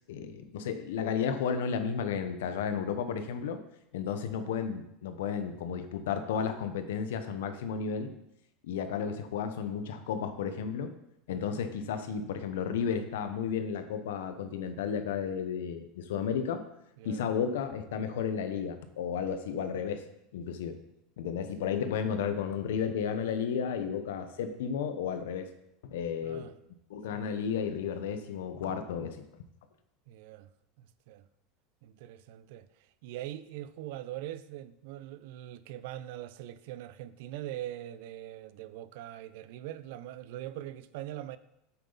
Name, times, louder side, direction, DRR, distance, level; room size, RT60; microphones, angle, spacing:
voice 1, 0.1-3.6 3.9-8.1 8.6-10.9 11.3-16.6 17.0-20.0 20.3-20.8 21.2-25.5 25.8-26.5 26.9-29.2, left 7 dB, 85° left, 1.0 m, -33 dB
voice 2, 11.3-11.6 17.0-17.2 21.4-21.5 26.2-26.5 27.1-27.2 30.1-30.5 30.8-31.3 31.8-32.7 33.0-41.4, right 13 dB, 70° right, 0.5 m, -42 dB
8.4 x 8.0 x 4.1 m
supercardioid pair, 115°, 0 cm